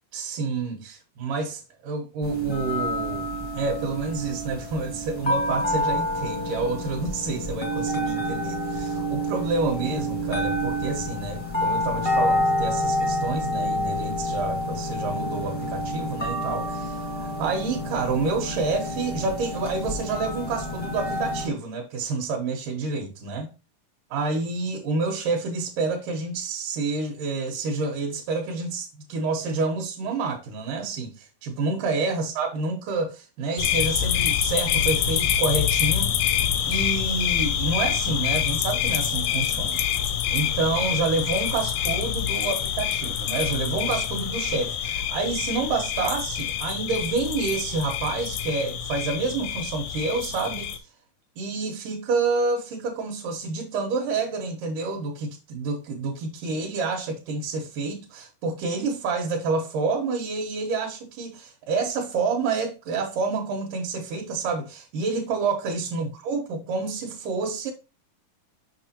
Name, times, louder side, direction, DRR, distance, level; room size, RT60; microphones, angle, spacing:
voice 1, 0.1-3.3 3.5-23.5 24.1-36.3 36.7-39.9 40.3-50.7 51.4-67.7, right 4 dB, 80° right, 2.6 m, -28 dB
sound 1, 2.2-21.5, equal, 30° left, 0.5 m, -28 dB
sound 2, 33.6-50.8, left 10 dB, 80° left, 1.8 m, -26 dB
6.3 x 5.9 x 2.8 m
omnidirectional pair, 3.8 m